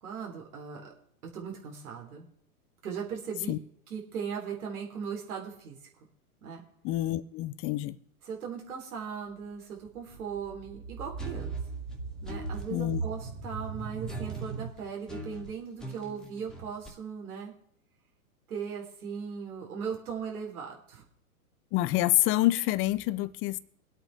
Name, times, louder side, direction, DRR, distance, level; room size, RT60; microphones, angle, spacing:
voice 1, 0.0-0.9 1.3-2.3 2.8-3.5 3.9-5.8 6.4-6.6 8.2-11.6 12.2-17.5 18.5-21.0, right 6 dB, 75° right, 4.0 m, -38 dB
voice 2, 6.8-8.0 12.7-13.0 21.7-23.6, left 16 dB, 30° left, 0.6 m, -27 dB
sound 1, 9.3-14.7, right 4 dB, 50° right, 3.0 m, -38 dB
sound 2, 11.2-12.8 14.1-16.9, right 1 dB, ahead, 2.1 m, -43 dB
22.5 x 8.4 x 3.6 m
hypercardioid pair, 120°, 44 cm